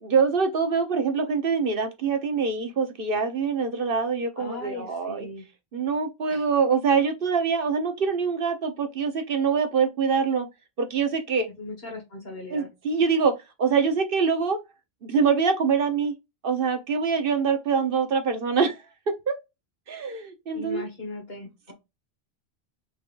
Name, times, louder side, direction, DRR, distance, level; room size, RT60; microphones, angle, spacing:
voice 1, 0.0-5.3 5.7-10.5 10.8-11.5 12.5-13.3 13.6-14.6 15.0-16.1 16.4-19.4 19.9-20.8, right 5 dB, 65° right, 1.1 m, -24 dB
voice 2, 4.4-5.5 6.3-6.5 11.6-12.7 20.5-21.7, left 2 dB, 70° left, 1.9 m, -38 dB
5.3 x 3.6 x 2.5 m
omnidirectional pair, 1.0 m